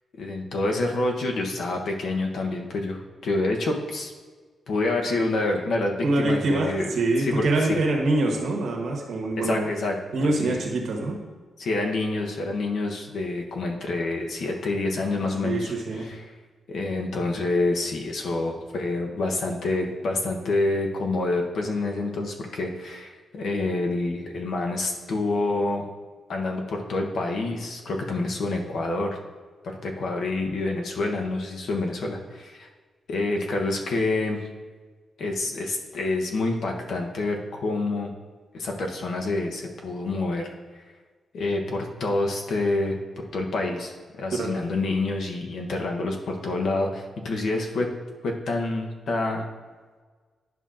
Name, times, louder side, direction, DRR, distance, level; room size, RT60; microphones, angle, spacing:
voice 1, 0.2-4.1 4.7-7.8 9.4-10.0 10.2-10.6 11.6-15.7 16.0-16.3 16.7-25.8 26.3-29.2 29.8-32.7 33.1-34.5 35.2-38.1 38.5-40.5 41.3-43.0 43.3-47.9 48.2-49.5, left 2 dB, 60° left, 2 dB, 0.9 m, -27 dB
voice 2, 6.0-9.6 10.1-11.2 15.4-16.1 44.4-44.6, right 2 dB, 65° right, 1 dB, 1.2 m, -25 dB
11.0 x 5.5 x 2.5 m, 1.4 s
wide cardioid pair, 175°, 0 cm